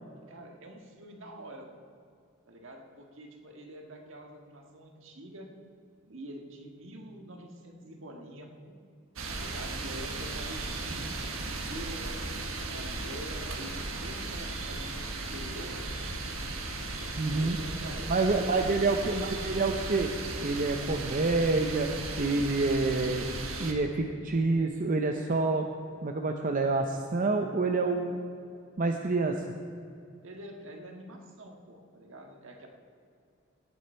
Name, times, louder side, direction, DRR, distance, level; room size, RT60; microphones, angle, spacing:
voice 1, 0.3-1.7 2.5-5.5 6.1-8.7 9.3-12.2 12.7-15.8 17.3-18.1 18.4-19.3 30.2-32.7, right 1 dB, 65° right, 2 dB, 1.6 m, -46 dB
sound 1, 9.2-23.7, right 2 dB, 80° right, 1.4 m, -36 dB
voice 2, 17.2-17.6 18.1-20.1 20.4-23.3 23.6-25.7 26.0-28.2 28.8-29.4, right 3 dB, 40° right, 4 dB, 0.6 m, -27 dB
18.5 x 8.4 x 4.5 m, 2.4 s
head